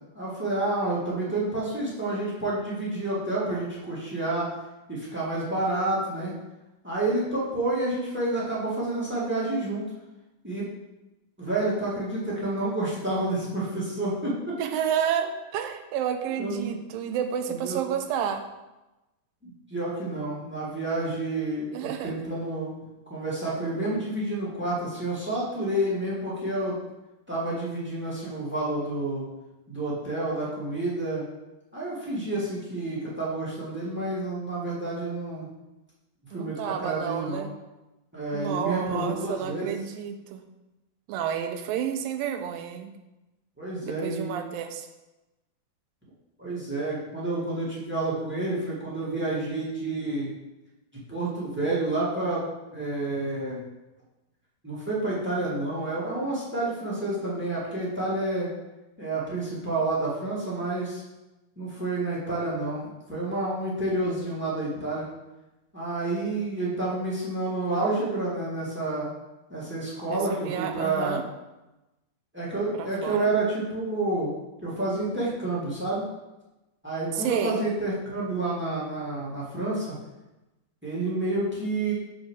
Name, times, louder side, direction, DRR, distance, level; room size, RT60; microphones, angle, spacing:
voice 1, 0.1-4.5 4.9-6.3 6.8-9.8 10.4-10.7 11.4-14.3 16.4-16.7 17.5-17.8 19.4-22.7 23.1-26.8 27.3-29.2 29.7-31.2 31.7-35.5 36.3-37.5 38.1-39.7 43.6-44.3 46.4-50.3 51.1-52.5 52.7-53.6 54.6-58.5 59.0-61.0 61.6-65.1 65.7-69.1 69.5-71.2 72.3-74.3 74.6-76.0 76.8-80.0 80.8-81.9, right 2 dB, 5° right, -7 dB, 0.8 m, -29 dB
voice 2, 14.6-18.4 21.7-22.1 36.3-37.5 38.3-40.4 41.1-42.9 43.8-44.9 70.1-71.2 72.7-73.3 77.1-77.6, right 8 dB, 80° right, 6 dB, 2.3 m, -30 dB
7.2 x 4.5 x 6.3 m, 1.0 s
omnidirectional pair, 4.2 m